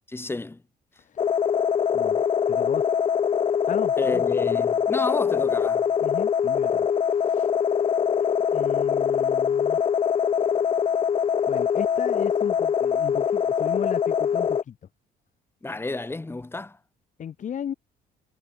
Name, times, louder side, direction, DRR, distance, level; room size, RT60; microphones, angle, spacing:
voice 1, 0.1-0.6 4.0-5.9 15.6-16.8, left 2 dB, 15° left, 5.4 m, -31 dB
voice 2, 1.0-1.3 1.9-2.9 3.7-4.7 6.0-7.5 8.5-9.8 11.5-14.8 17.2-17.7, left 9 dB, 50° left, 4.1 m, -36 dB
sound 1, 1.2-14.6, left 7 dB, 35° left, 0.6 m, -23 dB
cardioid pair, 110°, 17 cm